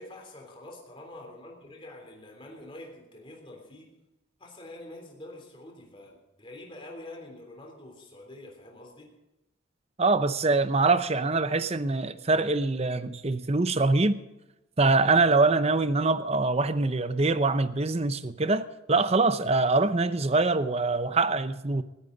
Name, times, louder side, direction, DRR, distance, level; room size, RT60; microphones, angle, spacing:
voice 1, 0.0-3.9 4.4-9.2, left 1 dB, 25° left, 3.4 m, -46 dB
voice 2, 10.0-14.2 14.8-21.8, right 3 dB, 30° right, 0.7 m, -24 dB
20.0 x 15.0 x 4.0 m
head